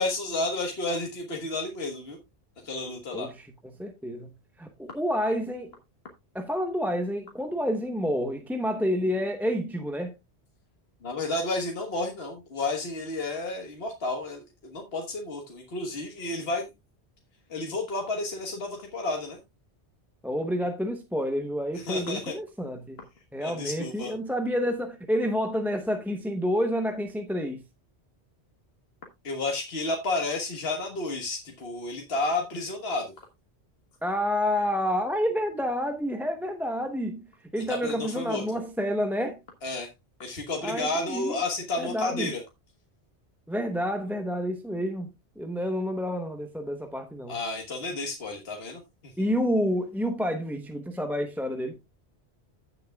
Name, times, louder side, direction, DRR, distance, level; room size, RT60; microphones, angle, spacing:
voice 1, 0.0-2.2 2.6-3.3 11.0-16.7 17.5-19.4 21.7-22.3 23.4-24.1 29.2-33.1 37.6-38.4 39.6-39.9 40.2-42.4 47.3-49.3, left 2 dB, 70° left, 1.6 m, -31 dB
voice 2, 3.1-3.5 3.8-4.3 4.6-5.7 6.3-10.1 20.2-23.0 23.3-27.6 34.0-37.2 37.5-39.4 40.6-41.4 41.8-42.3 43.5-45.1 45.4-47.3 49.2-51.8, equal, ahead, 0.8 m, -29 dB
15.5 x 6.7 x 2.3 m
omnidirectional pair, 1.1 m